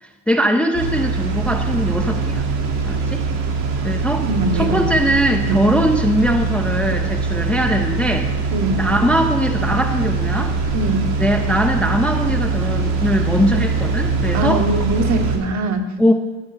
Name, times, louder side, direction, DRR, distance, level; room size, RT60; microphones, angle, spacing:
voice 1, 0.0-2.4 2.9-3.2 3.8-4.3 4.5-8.3 8.8-10.5 11.2-14.6 16.0-16.1, equal, 5° left, 3 dB, 0.5 m, -20 dB
sound 1, 0.7-15.4, right 4 dB, 75° right, 2.3 m, -22 dB
voice 2, 4.2-4.9 5.5-5.6 8.5-8.9 10.7-11.1 14.3-15.9, right 2 dB, 40° right, 6 dB, 1.2 m, -22 dB
12.0 x 9.0 x 5.6 m, 1.3 s
cardioid pair, 150°, 42 cm